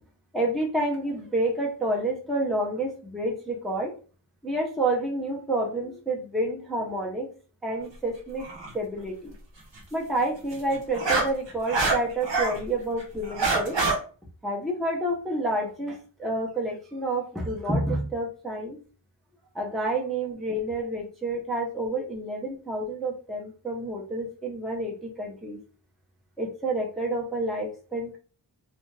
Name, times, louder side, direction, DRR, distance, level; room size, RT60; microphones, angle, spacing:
voice 1, 0.3-3.9 4.4-7.3 7.6-8.5 8.7-9.3 9.9-13.8 14.4-18.8 19.5-25.6 26.4-28.2, right 1 dB, ahead, -2 dB, 0.6 m, -29 dB
sound 1, 8.4-8.7 10.5-12.6 13.0-13.9, right 3 dB, 70° right, 1.0 m, -25 dB
2.7 x 2.4 x 3.1 m, 0.38 s
wide cardioid pair, 90°, 45 cm